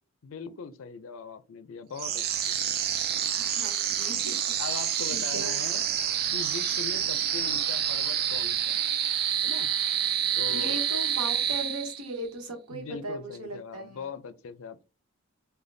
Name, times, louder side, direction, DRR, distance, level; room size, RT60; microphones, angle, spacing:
voice 1, 0.2-2.6 4.6-8.9 9.4-9.7 10.4-10.8 12.7-14.8, left 5 dB, 65° left, 0.4 m, -40 dB
sound 1, 2.0-12.2, right 9 dB, 45° right, 0.3 m, -28 dB
voice 2, 3.4-4.4 5.1-5.6 10.0-14.1, right 1 dB, 80° right, 1.1 m, -38 dB
5.0 x 2.2 x 2.6 m
head